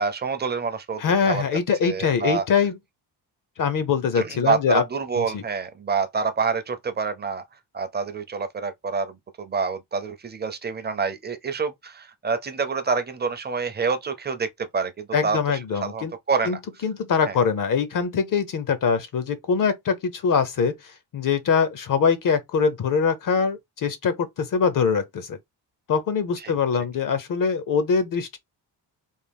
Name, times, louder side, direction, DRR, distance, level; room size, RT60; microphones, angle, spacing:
voice 1, 0.0-1.4 1.8-2.4 4.2-7.4 7.7-14.5 14.7-16.6 17.3-17.4 26.4-26.5, right 5 dB, 25° right, 0.5 m, -27 dB
voice 2, 1.0-2.8 3.6-4.8 5.2-5.4 15.1-16.1 16.5-16.6 16.8-25.4 25.9-28.4, left 6 dB, 50° left, 0.6 m, -23 dB
3.5 x 2.3 x 3.4 m
wide cardioid pair, 150°, 43 cm